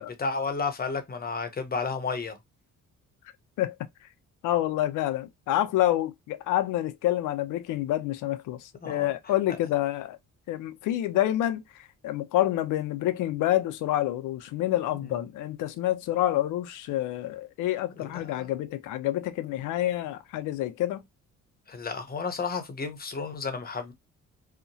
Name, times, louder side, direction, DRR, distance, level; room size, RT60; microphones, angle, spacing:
voice 1, 0.0-2.4 8.8-9.1 15.0-15.1 18.0-18.5 21.7-23.9, left 4 dB, 30° left, 0.7 m, -32 dB
voice 2, 4.4-10.2 10.5-11.6 12.0-21.0, left 13 dB, 85° left, 0.5 m, -28 dB
2.8 x 2.1 x 2.6 m
cardioid pair, 90°, 30 cm